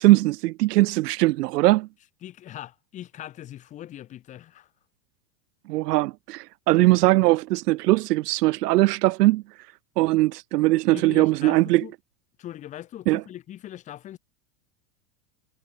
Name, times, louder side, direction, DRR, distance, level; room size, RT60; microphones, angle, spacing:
voice 1, 0.0-1.9 5.7-9.4 10.0-11.8 13.1-13.2, right 19 dB, 90° right, 0.7 m, -20 dB
voice 2, 2.2-4.7 10.9-11.9 12.4-14.2, left 12 dB, 15° left, 1.0 m, -40 dB
supercardioid pair, 175°, 46 cm